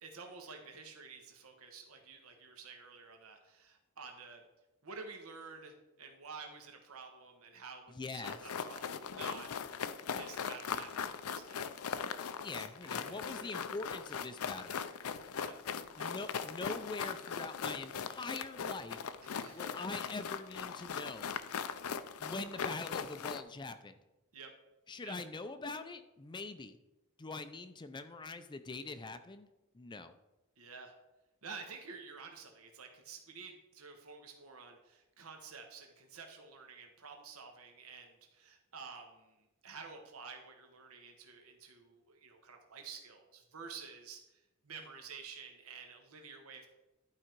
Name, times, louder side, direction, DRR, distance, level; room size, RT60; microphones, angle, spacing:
voice 1, 0.0-4.4 4.8-9.5 10.0-13.5 15.3-15.6 16.0-16.1 19.2-19.8 24.3-24.5 25.0-25.2 30.6-30.9 31.4-46.7, right 5 dB, 80° right, 3 dB, 1.3 m, -51 dB
voice 2, 7.9-8.4 12.4-14.8 16.0-19.0 19.5-21.3 22.2-24.0 24.9-26.8 27.2-29.5 29.7-30.2, left 3 dB, 20° left, 9 dB, 0.4 m, -43 dB
sound 1, 8.2-23.4, left 6 dB, 85° left, 0.5 m, -40 dB
11.5 x 4.9 x 4.5 m, 0.98 s
head